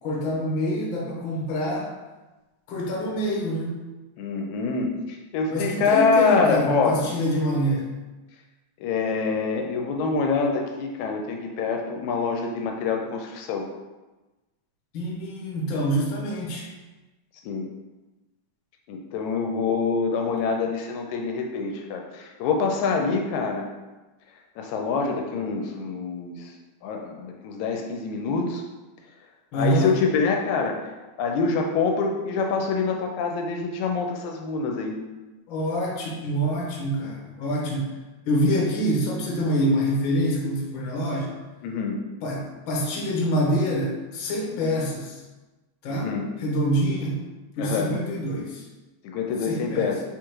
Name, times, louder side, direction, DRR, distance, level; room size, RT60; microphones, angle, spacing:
voice 1, 0.0-1.9 2.7-3.8 5.5-7.9 14.9-16.7 29.5-30.0 35.5-37.9 38.3-41.3 42.2-45.2 45.8-47.2 47.6-48.6 49.4-49.9, equal, 65° left, -2 dB, 1.2 m, -26 dB
voice 2, 4.2-7.0 8.8-13.7 17.4-17.7 18.9-23.7 24.6-26.5 26.8-28.6 29.5-30.8 31.2-35.0 41.6-42.0 45.9-46.3 47.6-47.9 49.0-50.0, left 4 dB, 80° left, 2 dB, 1.9 m, -25 dB
4.5 x 3.6 x 3.0 m, 1.1 s
omnidirectional pair, 3.4 m